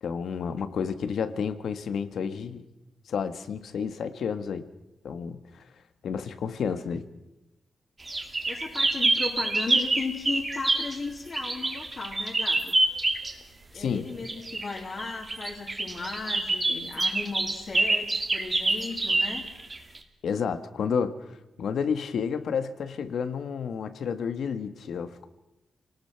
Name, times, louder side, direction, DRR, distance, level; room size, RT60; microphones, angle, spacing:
voice 1, 0.0-2.6 3.1-4.6 5.0-5.6 6.0-7.1 13.7-14.1 20.2-25.3, left 6 dB, 75° left, 11 dB, 1.7 m, -31 dB
sound 1, 8.1-11.0 11.3-13.3 14.3-20.0, right 2 dB, 25° right, 2.4 m, -26 dB
voice 2, 8.3-12.8 13.7-19.5, left 4 dB, 40° left, -2 dB, 3.1 m, -36 dB
28.5 x 19.0 x 5.9 m, 0.97 s
wide cardioid pair, 145°, 0 cm